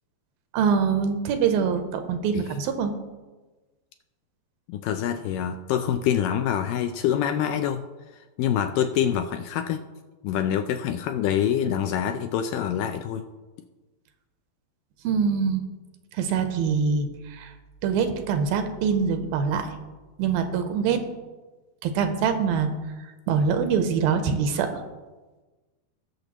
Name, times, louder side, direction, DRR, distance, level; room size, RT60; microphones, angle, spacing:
voice 1, 0.5-2.9 15.0-15.6 16.2-17.5 17.8-19.7 20.2-21.0 21.8-22.7 23.3-24.8, right 6 dB, 80° right, 8 dB, 2.4 m, -24 dB
voice 2, 4.7-7.9 8.4-9.8 10.2-13.3, left 9 dB, 80° left, 7 dB, 2.0 m, -26 dB
20.0 x 6.7 x 3.0 m, 1.2 s
omnidirectional pair, 4.3 m